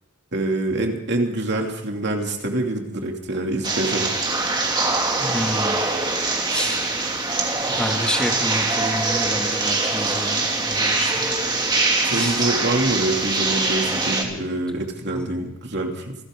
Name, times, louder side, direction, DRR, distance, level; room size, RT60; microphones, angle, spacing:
voice 1, 0.3-4.1 12.0-16.2, right 2 dB, 55° right, 2 dB, 2.8 m, -25 dB
sound 1, 3.6-14.2, right 3 dB, 20° right, 2.8 m, -23 dB
voice 2, 5.2-5.8 6.5-6.8 7.6-11.6 12.1-12.4 15.1-15.3, equal, 5° left, 1 dB, 2.4 m, -29 dB
28.0 x 13.5 x 3.8 m, 0.85 s
head